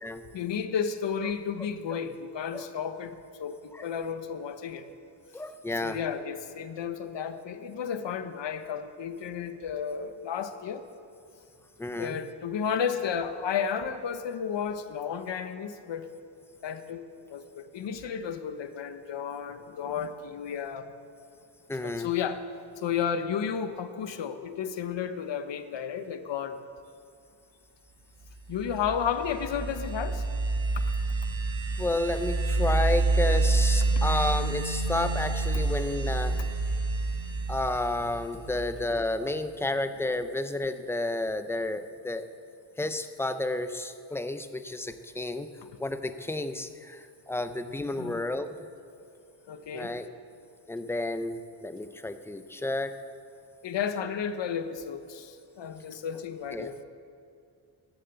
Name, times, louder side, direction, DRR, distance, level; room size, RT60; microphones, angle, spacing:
voice 1, 0.3-4.9 5.8-10.8 12.0-16.1 16.6-17.0 17.3-20.9 21.8-22.4 22.8-26.6 28.5-30.2 48.0-48.2 49.5-49.9 53.6-56.8, left 7 dB, 65° left, 10 dB, 1.0 m, -32 dB
voice 2, 5.3-6.0 11.8-12.2 21.7-22.1 31.8-36.4 37.5-42.3 42.8-45.5 45.8-48.6 49.7-50.1 50.7-52.9 56.5-56.8, left 2 dB, 5° left, 9 dB, 0.5 m, -31 dB
sound 1, 28.5-39.0, right 3 dB, 45° right, 3.0 m, -28 dB
14.0 x 11.5 x 7.9 m, 2.4 s
wide cardioid pair, 150°, 47 cm